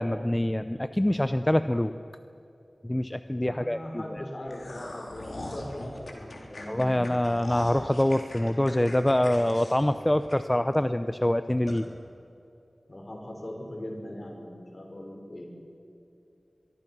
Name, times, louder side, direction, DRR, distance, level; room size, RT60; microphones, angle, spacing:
voice 1, 0.0-1.9 2.8-4.2 6.7-11.9, left 1 dB, 15° left, 10 dB, 0.6 m, -25 dB
voice 2, 3.4-7.1 12.9-15.5, left 1 dB, 45° left, 1 dB, 5.8 m, -40 dB
sound 1, 4.5-10.8 11.1-11.2 11.7-11.8, left 2 dB, 80° left, 3.9 m, -41 dB
24.0 x 23.0 x 6.1 m, 2.8 s
wide cardioid pair, 70°, 0 cm